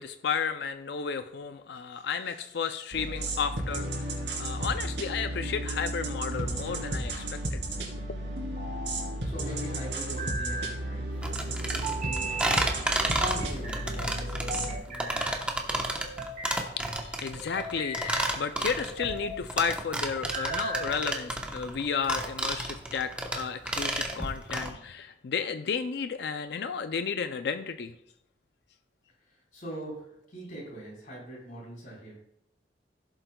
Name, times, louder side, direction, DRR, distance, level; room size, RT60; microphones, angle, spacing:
voice 1, 0.0-3.9 4.4-7.6 17.0-27.9, left 6 dB, 65° left, 9 dB, 0.4 m, -33 dB
sound 1, 2.9-14.8, right 1 dB, 85° right, 2.9 m, -33 dB
sound 2, 6.3-7.0 8.3-9.1 10.0-10.8 11.8-12.6 13.2-13.9 14.5-15.3 16.0-16.6 17.4-18.3 18.8-19.4 20.1-21.0, right 1 dB, 55° right, 3.0 m, -37 dB
voice 2, 8.9-12.3 12.7-15.8 29.2-32.2, right 1 dB, 50° left, -5 dB, 4.2 m, -43 dB
sound 3, 11.2-24.7, right 1 dB, 5° right, 1.0 m, -31 dB
15.5 x 7.7 x 2.3 m, 0.75 s
head